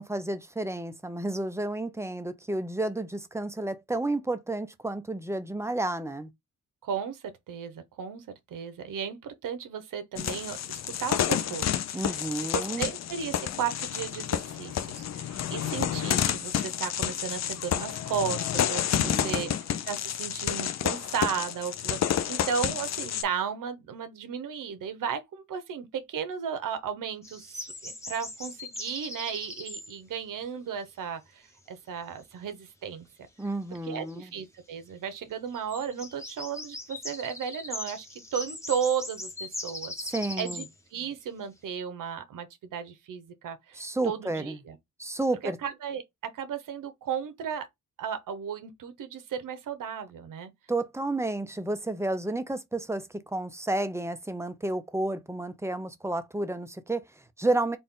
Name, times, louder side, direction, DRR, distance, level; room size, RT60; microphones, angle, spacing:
voice 1, 0.0-6.3 11.9-12.9 19.0-19.5 33.4-34.3 40.1-40.6 43.7-44.6 45.0-45.6 50.7-57.8, right 2 dB, 10° right, 0.6 m, -31 dB
voice 2, 6.8-11.7 12.5-19.5 19.9-33.1 33.8-39.9 40.4-40.6 40.9-44.8 45.4-47.7 48.0-50.5, right 7 dB, 85° right, 0.9 m, -35 dB
sound 1, 10.2-23.2, left 10 dB, 60° left, 0.5 m, -30 dB
sound 2, 27.2-30.0 33.7-33.8 34.1-34.2 35.5-40.7, left 2 dB, 10° left, 1.0 m, -39 dB
4.2 x 2.3 x 3.6 m
cardioid pair, 110°, 31 cm